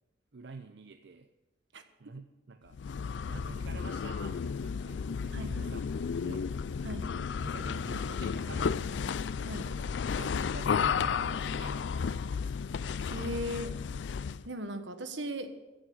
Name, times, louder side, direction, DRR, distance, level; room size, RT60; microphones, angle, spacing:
voice 1, 0.3-1.3 2.0-2.8 3.3-6.5 7.1-9.1 9.5-11.9, right 3 dB, 70° right, 8 dB, 0.6 m, -47 dB
sound 1, 2.7-14.5, left 6 dB, 75° left, 0.4 m, -33 dB
voice 2, 5.3-5.8 6.8-7.1 9.4-9.7 13.1-13.7 14.4-15.5, equal, 90° right, 8 dB, 1.4 m, -37 dB
15.0 x 7.8 x 7.1 m, 1.1 s
head